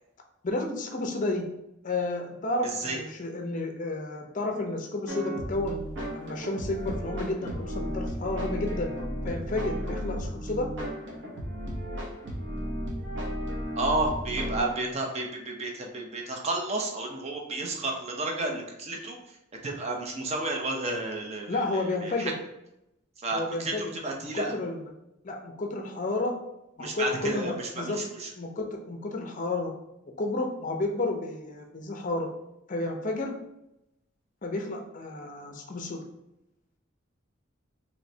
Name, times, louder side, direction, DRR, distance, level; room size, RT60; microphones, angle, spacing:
voice 1, 0.4-1.4 1.8-5.8 6.1-8.9 9.2-10.7 21.5-22.3 23.3-23.9 24.3-24.8 25.2-26.4 26.8-28.0 28.4-29.7 30.2-32.3 32.7-33.3 34.4-36.0, left 2 dB, 40° left, 3 dB, 0.5 m, -31 dB
sound 1, 5.1-14.6, equal, 60° right, 0.8 m, -34 dB
voice 2, 13.8-19.2 19.6-22.3 23.2-23.7 24.0-24.5 26.8-28.3, right 2 dB, 30° right, 1 dB, 0.5 m, -31 dB
3.1 x 3.1 x 2.7 m, 0.85 s
head